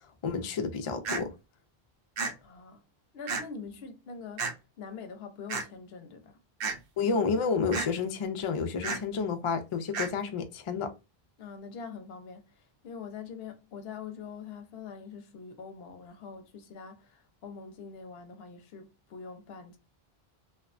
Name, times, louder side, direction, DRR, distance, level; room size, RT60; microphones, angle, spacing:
voice 1, 0.2-1.3 7.0-10.9, left 5 dB, 50° left, 0.4 m, -30 dB
sound 1, 1.0-1.2 2.2-2.3 3.3-3.4 4.4-4.5 5.5-5.6 6.6-6.8 7.7-7.9 8.8-9.0 9.9-10.1, right 4 dB, 70° right, 0.8 m, -31 dB
voice 2, 2.4-2.9 3.1-6.4 11.4-19.8, left 5 dB, 80° left, 0.8 m, -44 dB
2.7 x 2.1 x 2.4 m
omnidirectional pair, 1.0 m